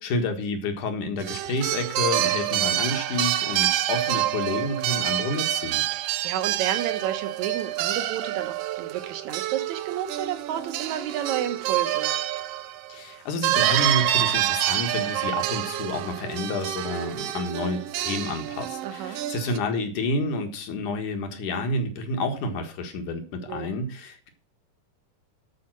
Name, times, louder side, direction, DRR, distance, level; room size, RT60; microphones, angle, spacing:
voice 1, 0.0-5.8 12.9-24.3, left 2 dB, 75° left, 4 dB, 3.1 m, -29 dB
sound 1, 1.2-13.0 13.4-19.6, right 13 dB, 90° right, 1.3 m, -27 dB
voice 2, 5.9-12.1 18.8-19.2 23.5-23.7, right 10 dB, 70° right, 9 dB, 2.4 m, -31 dB
11.5 x 5.2 x 7.5 m, 0.38 s
omnidirectional pair, 3.6 m